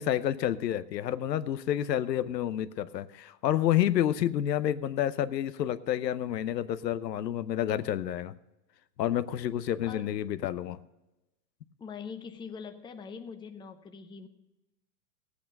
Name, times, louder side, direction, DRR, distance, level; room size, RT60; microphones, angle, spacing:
voice 1, 0.0-8.3 9.0-10.8, left 11 dB, 85° left, 14 dB, 0.8 m, -29 dB
voice 2, 11.8-14.3, left 6 dB, 10° left, 6 dB, 0.7 m, -43 dB
16.0 x 8.4 x 5.3 m, 0.98 s
hypercardioid pair, 125°, 48 cm